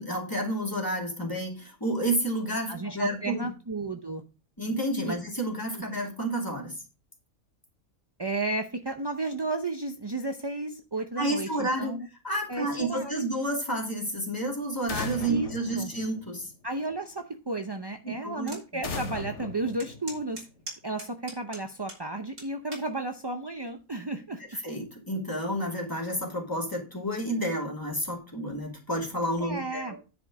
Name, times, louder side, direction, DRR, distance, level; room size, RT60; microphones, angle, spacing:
voice 1, 0.0-3.5 4.6-6.7 11.2-11.9 12.2-16.5 18.0-18.5 24.6-30.0, right 1 dB, 15° left, -1 dB, 2.6 m, -30 dB
voice 2, 2.7-4.2 5.1-5.2 5.7-5.8 8.2-12.1 12.5-13.2 15.3-15.9 16.6-20.5 20.8-24.4 29.4-30.0, right 2 dB, 40° right, 5 dB, 0.3 m, -33 dB
sound 1, 14.9-16.7 18.8-20.6, left 4 dB, 55° left, 1.5 m, -38 dB
sound 2, 18.5-18.6 19.1-19.2 19.8-22.0 22.4-22.9 23.6-23.9, right 2 dB, 75° right, 3.8 m, -41 dB
10.0 x 5.1 x 4.7 m, 0.32 s
omnidirectional pair, 1.5 m